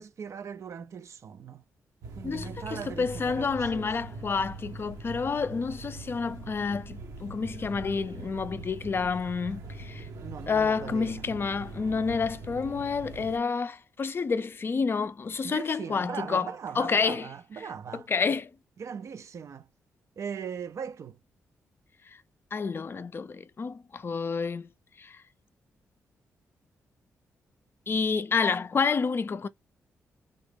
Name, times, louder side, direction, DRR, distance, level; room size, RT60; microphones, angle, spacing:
voice 1, 0.0-1.6 2.2-3.9 10.0-11.3 15.4-18.1 18.8-19.7 20.2-21.2, right 7 dB, 60° right, 0.4 m, -39 dB
sound 1, 2.0-13.4, right 2 dB, 85° right, 0.9 m, -42 dB
voice 2, 2.2-10.1 10.5-16.5 16.8-17.3 17.9-18.5 22.5-24.7 25.0-25.2 27.9-29.5, left 5 dB, 40° left, 0.4 m, -29 dB
3.8 x 2.1 x 3.3 m
cardioid pair, 60°, 6 cm